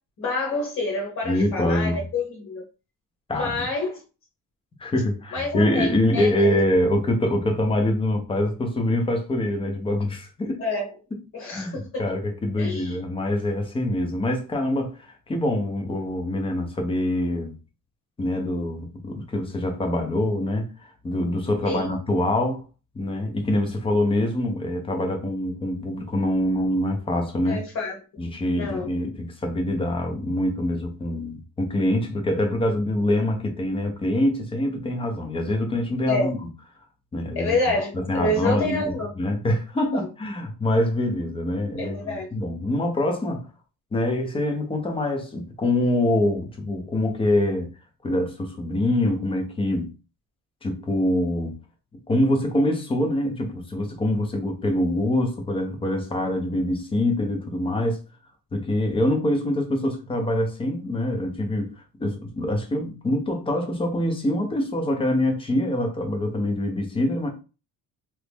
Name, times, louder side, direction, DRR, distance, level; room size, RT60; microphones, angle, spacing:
voice 1, 0.2-2.6 3.3-4.0 5.3-6.6 10.6-10.9 11.3-11.8 12.6-12.9 21.6-21.8 27.4-28.0 28.6-28.9 36.1-36.3 37.3-39.1 39.9-40.1 41.8-42.3, left 2 dB, 55° left, 1.3 m, -27 dB
voice 2, 1.2-2.0 3.3-3.6 4.8-10.6 11.5-17.5 18.2-22.6 22.9-27.6 28.2-36.4 37.1-37.6 37.9-43.4 43.9-47.7 48.0-49.9 50.6-51.5 52.1-58.0 58.5-61.7 62.0-67.3, left 1 dB, 15° left, 0.6 m, -25 dB
3.0 x 2.5 x 3.4 m
cardioid pair, 160°, 35 cm